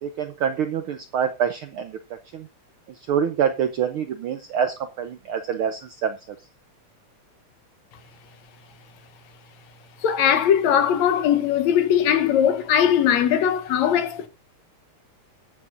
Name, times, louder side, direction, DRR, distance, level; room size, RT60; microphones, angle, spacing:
voice 1, 0.0-2.0 2.3-2.5 2.9-6.2, right 8 dB, 70° right, 1.2 m, -26 dB
voice 2, 10.0-14.3, left 9 dB, 70° left, 2.4 m, -20 dB
21.5 x 7.3 x 2.6 m
omnidirectional pair, 3.3 m